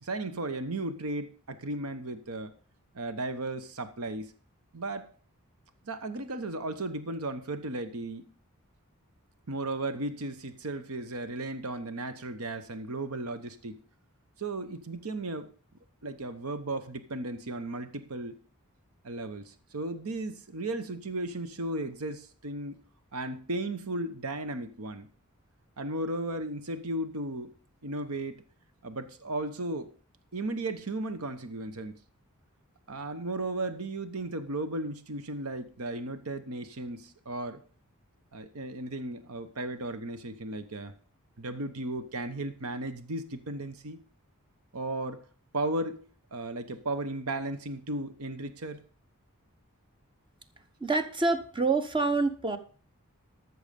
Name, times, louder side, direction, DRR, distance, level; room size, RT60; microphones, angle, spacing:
voice 1, 0.0-2.5 2.9-4.3 4.7-5.1 5.8-8.3 9.5-13.8 14.4-15.5 16.0-18.4 19.0-22.8 23.1-25.1 25.8-27.5 27.8-28.4 28.8-29.9 30.3-32.0 32.9-37.6 38.3-40.9 41.4-44.0 44.7-45.2 45.5-46.0 46.3-48.8, right 2 dB, 75° right, 11 dB, 1.0 m, -35 dB
voice 2, 50.8-52.6, right 3 dB, 20° right, 9 dB, 1.0 m, -27 dB
13.5 x 6.4 x 5.3 m, 0.41 s
head